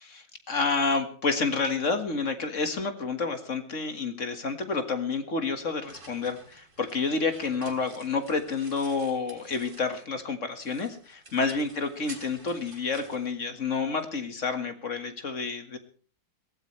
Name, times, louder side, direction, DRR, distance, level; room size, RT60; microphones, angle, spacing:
voice 1, 0.1-15.8, left 4 dB, 35° left, 7 dB, 1.9 m, -29 dB
sound 1, 5.4-10.2 10.5-14.1, right 2 dB, 25° right, 2.9 m, -51 dB
22.5 x 17.0 x 3.3 m, 0.41 s
omnidirectional pair, 2.4 m